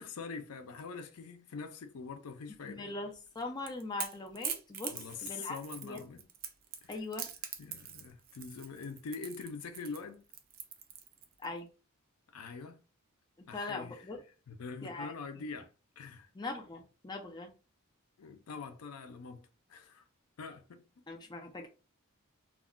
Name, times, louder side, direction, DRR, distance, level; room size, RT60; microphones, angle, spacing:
voice 1, 0.0-2.9 4.9-6.2 6.8-7.0 7.6-10.2 12.3-12.8 13.5-14.1 14.5-16.3 18.2-20.1 20.4-20.8, left 4 dB, 80° left, 0.4 m, -44 dB
voice 2, 2.6-5.6 5.8-6.0 6.9-7.3 11.4-11.7 13.4-14.2 14.8-15.1 16.4-17.5 21.1-21.7, left 3 dB, 20° left, 0.5 m, -41 dB
Crackle / Crack, 3.3-11.4, right 8 dB, 40° right, 0.4 m, -43 dB
2.3 x 2.1 x 3.5 m
head